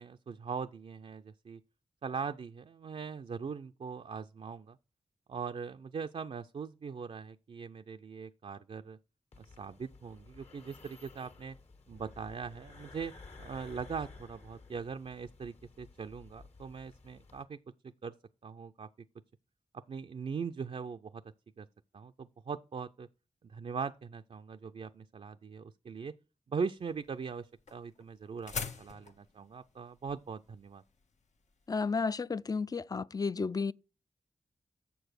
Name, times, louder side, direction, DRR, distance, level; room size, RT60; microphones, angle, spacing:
voice 1, 0.0-1.6 2.0-4.8 5.3-9.0 9.5-11.6 11.9-13.1 13.4-17.6 17.8-18.2 18.4-18.9 19.7-21.2 21.6-21.7 21.9-23.1 23.4-26.1 26.5-30.8, right 5 dB, 55° right, 0.4 m, -41 dB
sound 1, 9.3-17.4, left 3 dB, 60° left, 1.6 m, -54 dB
sound 2, 26.8-32.0, left 5 dB, 75° left, 1.0 m, -44 dB
voice 2, 31.7-33.7, left 4 dB, 30° left, 0.4 m, -32 dB
7.1 x 6.9 x 6.4 m
cardioid pair, 65°, 12 cm